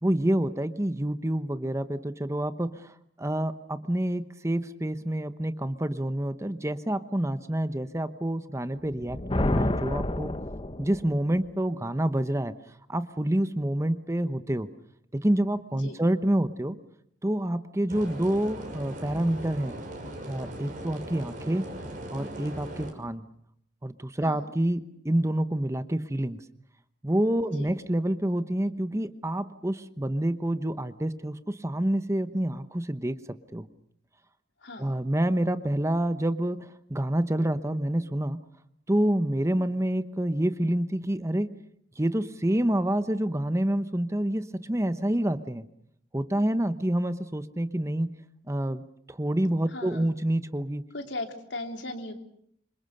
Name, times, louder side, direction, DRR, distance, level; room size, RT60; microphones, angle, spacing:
voice 1, 0.0-2.9 3.2-10.3 10.8-12.5 12.9-14.7 15.1-16.8 17.2-19.7 20.2-21.6 22.1-23.2 23.8-26.4 27.0-33.2 33.5-33.7 34.8-38.4 38.9-41.5 42.0-45.6 46.1-48.2 48.5-50.8, right 1 dB, 15° right, 12 dB, 1.0 m, -28 dB
Thunder, 8.9-11.2, left 1 dB, 30° left, 1.0 m, -29 dB
sound 1, 17.9-22.9, right 1 dB, 45° right, 5.7 m, -39 dB
voice 2, 34.6-34.9 49.7-50.1 50.9-52.1, left 2 dB, 80° left, 5 dB, 3.4 m, -37 dB
27.0 x 24.5 x 6.6 m, 0.70 s
head